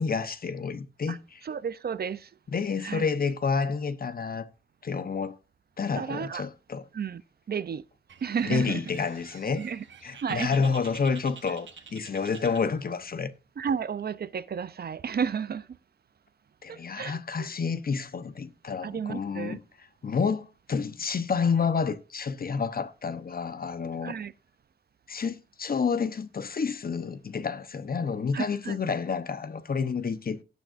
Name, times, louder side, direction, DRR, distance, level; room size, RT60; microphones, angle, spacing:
voice 1, 0.0-1.4 2.5-4.5 4.8-5.4 5.8-6.8 8.4-9.7 10.0-13.3 16.6-19.6 20.0-24.1 25.1-30.4, left 5 dB, 50° left, 0.9 m, -29 dB
voice 2, 1.4-2.3 2.8-3.0 6.0-6.4 6.9-7.2 7.5-7.8 8.2-8.8 9.6-9.8 10.2-10.5 13.6-15.7 16.7-17.5 18.8-19.6 24.0-24.3 28.3-28.8, right 7 dB, 55° right, 0.6 m, -32 dB
Bird, 8.1-13.1, right 6 dB, 85° right, 1.2 m, -49 dB
17.0 x 6.4 x 2.5 m
wide cardioid pair, 115°, 19 cm